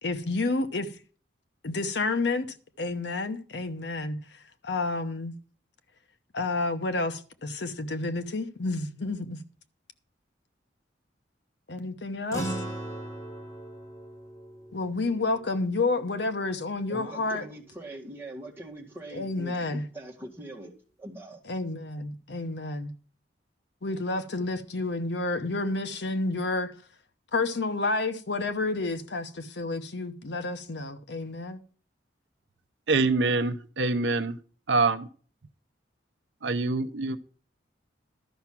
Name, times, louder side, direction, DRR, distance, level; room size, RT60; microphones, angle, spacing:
voice 1, 0.0-0.9 1.6-2.5 2.8-4.4 4.6-5.3 6.3-9.4 11.7-12.6 14.7-17.4 19.1-19.8 21.5-22.9 23.8-26.7 27.3-31.6, left 3 dB, 65° left, 0.9 m, -30 dB
sound 1, 12.3-17.0, right 1 dB, 20° left, 3.0 m, -39 dB
voice 2, 16.9-20.7 21.0-21.4, right 1 dB, 10° right, 2.0 m, -42 dB
voice 3, 32.9-34.4 34.7-35.1 36.4-37.2, right 3 dB, 70° right, 0.7 m, -25 dB
12.5 x 5.9 x 5.9 m
head